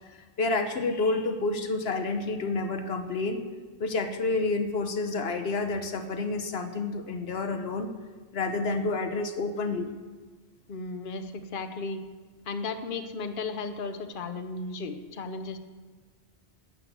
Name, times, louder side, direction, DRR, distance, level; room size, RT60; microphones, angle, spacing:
voice 1, 0.1-3.5 3.8-7.9 8.3-9.9, left 3 dB, 75° left, 7 dB, 1.2 m, -29 dB
voice 2, 10.7-12.0 12.5-15.6, left 3 dB, 55° left, 8 dB, 1.0 m, -35 dB
12.0 x 8.6 x 7.9 m, 1.4 s
omnidirectional pair, 1.1 m